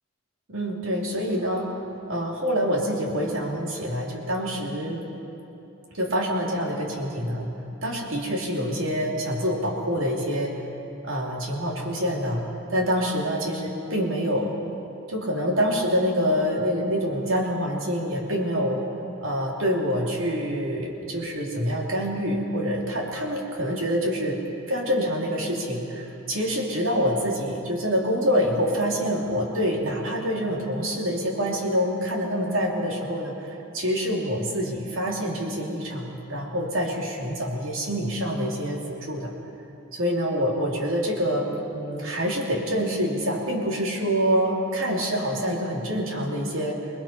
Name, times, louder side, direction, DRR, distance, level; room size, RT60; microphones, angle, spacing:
voice 1, 0.5-1.8 2.1-5.1 5.9-7.5 7.8-10.7 11.0-12.4 12.7-14.5 15.1-18.8 19.2-24.4 24.7-39.3 39.9-46.8, equal, 80° right, -1 dB, 3.0 m, -26 dB
30.0 x 20.0 x 4.4 m, 3.0 s
head